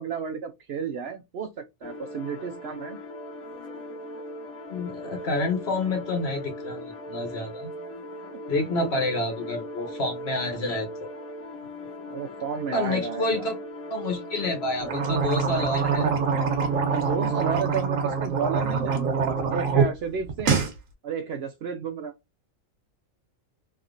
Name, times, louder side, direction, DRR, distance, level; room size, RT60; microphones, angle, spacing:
voice 1, 0.0-1.5 1.8-3.0 8.2-8.4 8.7-8.9 12.1-13.5 16.8-20.6 21.0-22.1, right 6 dB, 60° right, 0.7 m, -32 dB
sound 1, 1.8-17.6, left 1 dB, 75° left, 1.2 m, -39 dB
voice 2, 4.7-7.7 8.5-11.1 12.7-13.6 13.9-16.1, left 2 dB, 55° left, 1.2 m, -28 dB
sound 2, 14.8-19.9 20.2-20.7, right 5 dB, 80° right, 1.2 m, -25 dB
3.2 x 2.8 x 2.5 m
omnidirectional pair, 1.4 m